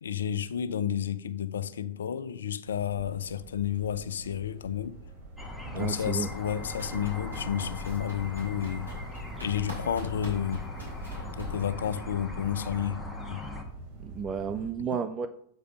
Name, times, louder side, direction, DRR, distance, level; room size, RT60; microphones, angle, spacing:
voice 1, 0.0-5.0 5.7-8.9 9.4-10.6 11.4-13.0 13.3-13.4 14.8-14.9, left 9 dB, 65° left, 0.5 m, -31 dB
sound 1, 2.7-14.7, right 4 dB, 55° right, 2.6 m, -46 dB
sound 2, 5.4-13.6, left 2 dB, ahead, 1.4 m, -40 dB
voice 2, 5.7-6.3 14.0-15.3, right 6 dB, 25° right, 0.4 m, -32 dB
sound 3, 6.6-11.5, left 1 dB, 85° right, 3.6 m, -42 dB
8.0 x 5.0 x 5.3 m
figure-of-eight pair, 90°, 0 cm